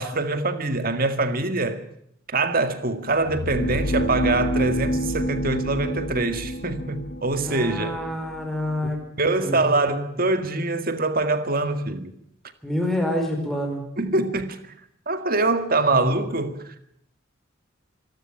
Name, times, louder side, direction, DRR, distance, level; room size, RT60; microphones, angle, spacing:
voice 1, 0.0-1.8 2.3-8.0 9.2-12.1 14.0-14.7 15.1-16.8, right 2 dB, 45° right, 2.0 m, -24 dB
sound 1, 3.1-9.0, equal, 55° left, 1.3 m, -28 dB
voice 2, 7.4-9.0 9.4-9.7 12.6-13.9 15.9-16.4, left 1 dB, ahead, 4.9 m, -27 dB
26.0 x 12.5 x 8.7 m
head